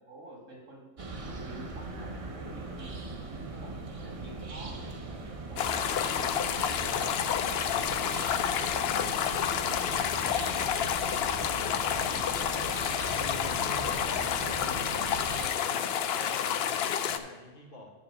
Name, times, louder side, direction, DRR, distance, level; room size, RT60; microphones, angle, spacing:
voice 1, 0.0-2.9 3.4-7.7 8.0-11.0 11.4-11.7 12.0-12.5 13.7-13.8, right 1 dB, 85° right, -1 dB, 2.6 m, -48 dB
sound 1, 1.0-15.5, right 3 dB, 35° right, 0.7 m, -40 dB
sound 2, 5.6-17.2, left 8 dB, 65° left, 0.7 m, -29 dB
voice 2, 10.0-10.7 11.6-11.9 12.4-12.6 13.2-17.9, left 2 dB, 45° left, 0 dB, 1.5 m, -46 dB
10.0 x 3.7 x 6.8 m, 1.3 s
omnidirectional pair, 1.3 m